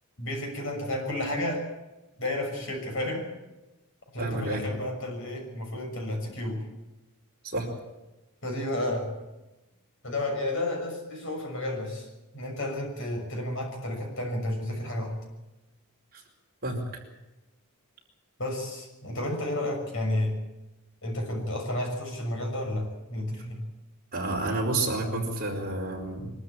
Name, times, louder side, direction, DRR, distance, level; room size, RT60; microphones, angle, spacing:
voice 1, 0.2-1.7 2.2-3.3 4.1-6.7 8.4-9.1 10.0-12.1 12.3-15.2 18.4-20.3 21.0-23.6, left 1 dB, 60° left, 2 dB, 6.6 m, -31 dB
voice 2, 4.2-4.6 7.4-7.7 16.1-16.2 16.6-16.8 24.1-26.3, right 2 dB, 40° right, 0 dB, 4.9 m, -29 dB
23.5 x 13.0 x 10.0 m, 1.0 s
head